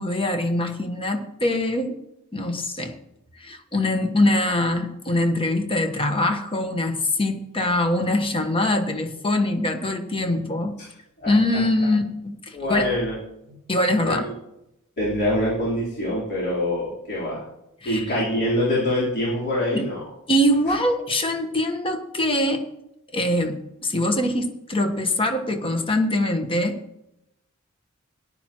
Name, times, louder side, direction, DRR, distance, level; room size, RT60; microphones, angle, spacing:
voice 1, 0.0-1.9 2.3-2.9 3.4-10.8 11.3-12.9 13.7-14.3 17.8-18.0 19.7-19.8 20.3-22.6 23.1-26.8, left 1 dB, 25° left, 6 dB, 1.2 m, -23 dB
voice 2, 12.5-13.1 14.0-14.3 15.0-17.4 17.8-20.0, left 1 dB, 50° left, -7 dB, 3.8 m, -24 dB
17.5 x 11.0 x 3.0 m, 0.84 s
head